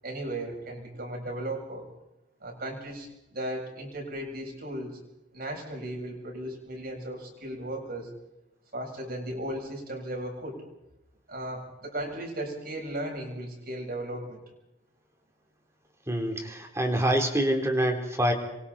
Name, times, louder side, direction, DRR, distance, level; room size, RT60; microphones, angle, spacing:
voice 1, 0.0-1.9 2.4-5.0 5.3-8.1 8.7-10.6 11.3-14.4, right 1 dB, 55° right, 1 dB, 7.9 m, -36 dB
voice 2, 16.1-18.3, right 1 dB, 15° right, 3 dB, 3.8 m, -26 dB
28.0 x 24.5 x 4.4 m, 0.90 s
head